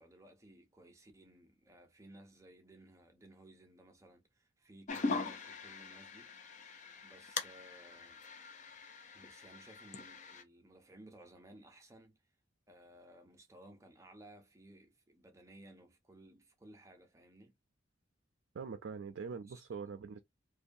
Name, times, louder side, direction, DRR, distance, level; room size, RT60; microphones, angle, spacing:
voice 1, 0.0-6.3 7.0-8.2 9.1-12.2 12.7-17.5 19.5-19.6, right 1 dB, 15° right, 0.6 m, -58 dB
sound 1, 4.9-10.4, left 4 dB, 40° left, 0.4 m, -42 dB
voice 2, 18.5-20.2, right 5 dB, 75° right, 0.4 m, -43 dB
2.6 x 2.2 x 2.6 m
head